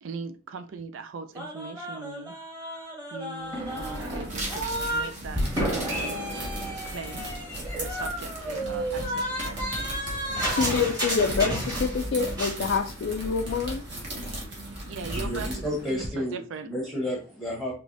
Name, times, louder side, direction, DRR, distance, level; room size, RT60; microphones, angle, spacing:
voice 1, 0.0-2.3 3.1-5.4 5.8-6.3 6.8-7.2 7.8-9.7 10.6-11.4 14.9-15.6 16.0-16.7, right 5 dB, 75° right, 0.4 m, -40 dB
sound 1, 1.3-5.1 5.3-12.0 12.3-12.6, equal, 20° right, 1.3 m, -32 dB
sound 2, 3.4-16.1, right 1 dB, 60° right, 1.6 m, -37 dB
sound 3, 4.3-9.1 9.5-10.4 10.9-11.1 11.5-12.3 12.8-13.0 13.3-13.8 14.0-14.4 14.8-15.1, right 2 dB, 35° right, 1.0 m, -42 dB
voice 2, 10.5-13.8, left 5 dB, 60° left, 0.4 m, -26 dB
voice 3, 15.1-16.4 16.7-17.7, equal, ahead, 0.9 m, -31 dB
4.8 x 3.0 x 2.5 m
head